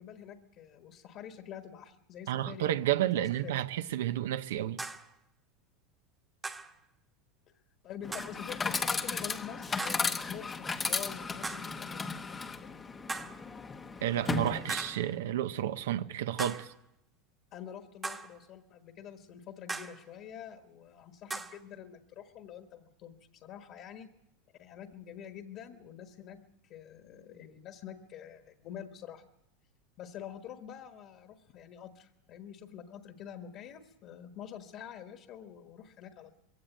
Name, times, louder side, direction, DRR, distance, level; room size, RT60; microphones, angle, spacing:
voice 1, 0.0-3.5 7.8-12.8 17.5-24.1 24.6-29.2 30.0-36.4, left 9 dB, 40° left, 1.3 m, -47 dB
voice 2, 2.3-4.8 14.0-16.7, right 12 dB, 90° right, 0.7 m, -31 dB
sound 1, 3.3-3.5 4.8-5.1 6.4-6.8 8.1-8.5 9.8-10.2 11.4-11.8 13.1-13.5 14.7-15.1 16.4-16.8 18.0-18.4 19.7-20.1 21.3-21.6, right 3 dB, 10° right, 1.1 m, -39 dB
Chatter / Coin (dropping), 8.0-15.1, left 4 dB, 15° left, 0.8 m, -35 dB
22.0 x 16.5 x 9.1 m
supercardioid pair, 160°, 0 cm